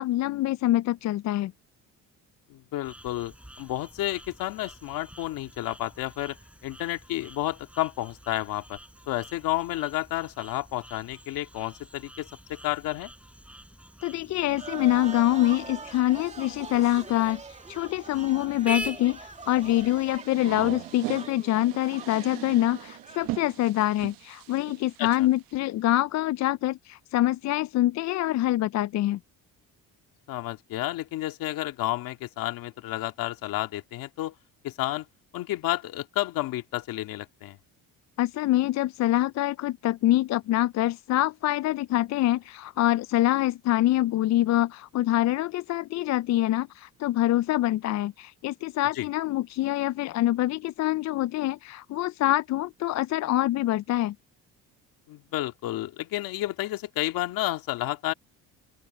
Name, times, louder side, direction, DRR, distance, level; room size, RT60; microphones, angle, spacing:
voice 1, 0.0-1.5 14.0-17.4 17.7-29.2 38.2-54.1, left 15 dB, 55° left, 0.4 m, -25 dB
voice 2, 2.5-6.4 6.6-8.8 9.1-13.1 25.0-25.1 30.3-34.3 34.6-35.1 35.3-37.6 49.0-49.1 55.1-58.1, left 16 dB, 75° left, 2.2 m, -31 dB
sound 1, 2.8-20.2, right 1 dB, 5° right, 6.3 m, -45 dB
sound 2, 14.5-23.3, right 4 dB, 20° right, 1.7 m, -43 dB
sound 3, 19.4-25.5, right 17 dB, 80° right, 0.9 m, -40 dB
open air
cardioid pair, 90°, 34 cm